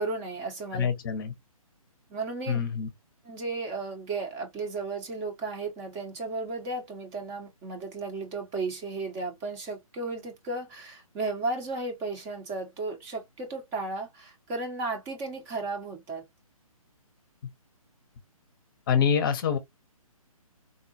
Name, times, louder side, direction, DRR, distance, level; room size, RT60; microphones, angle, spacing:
voice 1, 0.0-0.9 2.1-2.6 3.2-16.2, right 3 dB, 15° right, 0.7 m, -34 dB
voice 2, 0.7-1.3 2.5-2.9 18.9-19.6, left 7 dB, 35° left, 0.7 m, -25 dB
3.7 x 2.3 x 2.4 m
figure-of-eight pair, 140°, 19 cm